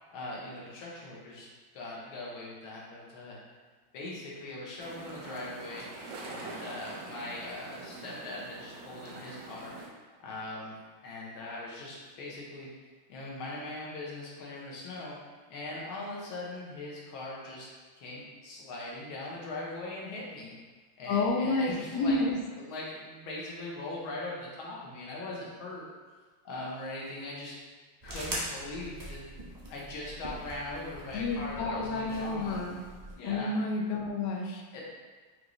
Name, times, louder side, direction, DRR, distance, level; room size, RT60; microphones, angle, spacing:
voice 1, 0.1-1.5 1.7-3.4 3.9-5.8 6.3-9.7 10.2-10.8 11.0-12.7 13.1-15.2 15.5-20.5 21.0-22.2 22.6-25.9 26.4-27.6 28.0-29.2 29.7-32.6 33.2-33.5 34.7-34.8, left 2 dB, 90° left, -4 dB, 1.7 m, -40 dB
sound 1, 4.8-9.9, right 3 dB, 85° right, 1.6 m, -44 dB
voice 2, 21.1-22.4 31.1-32.8 33.2-34.8, left 3 dB, 70° left, 0 dB, 1.0 m, -30 dB
sound 2, 28.0-33.2, right 1 dB, 40° right, 0.5 m, -42 dB
5.2 x 2.5 x 3.0 m, 1.4 s
omnidirectional pair, 2.2 m